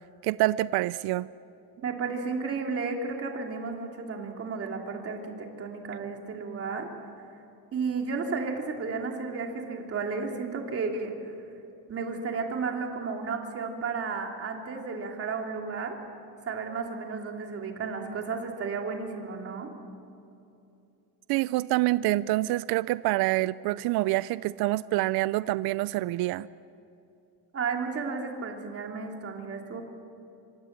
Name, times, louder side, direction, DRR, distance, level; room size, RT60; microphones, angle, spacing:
voice 1, 0.2-1.3 21.3-26.5, right 17 dB, 65° right, 17 dB, 0.5 m, -26 dB
voice 2, 1.8-6.9 7.7-11.1 11.9-16.0 16.4-19.7 27.5-29.8, right 4 dB, 35° right, 2 dB, 2.9 m, -33 dB
26.0 x 25.0 x 7.4 m, 2.7 s
cardioid pair, 175°, 40 cm